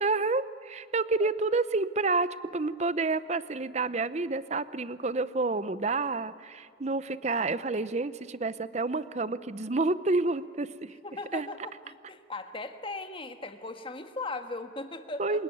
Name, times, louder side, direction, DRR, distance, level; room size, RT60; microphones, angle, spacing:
voice 1, 0.0-11.0 11.3-11.5 15.2-15.4, right 3 dB, 35° right, 15 dB, 0.7 m, -29 dB
voice 2, 11.0-11.6 11.8-15.4, left 2 dB, 25° left, 7 dB, 1.5 m, -38 dB
28.5 x 18.0 x 9.4 m, 2.4 s
head